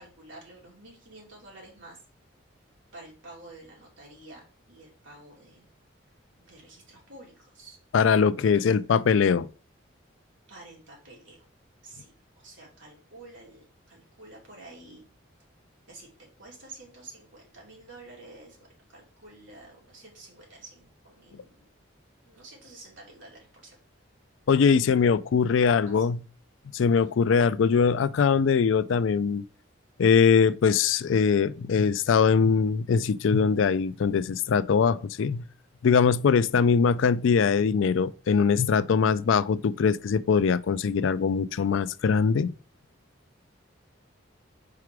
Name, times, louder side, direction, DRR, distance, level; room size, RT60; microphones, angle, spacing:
voice 1, 0.0-2.0 2.9-5.7 6.4-7.8 8.4-9.0 10.5-11.5 11.8-15.0 15.9-21.6 22.2-23.8 25.9-26.1 27.0-27.2, right 2 dB, 70° right, 2.7 m, -49 dB
voice 2, 7.9-9.5 24.5-26.2 26.7-29.4 30.0-35.4 35.8-42.5, left 6 dB, 75° left, 0.4 m, -22 dB
4.8 x 4.8 x 4.6 m
head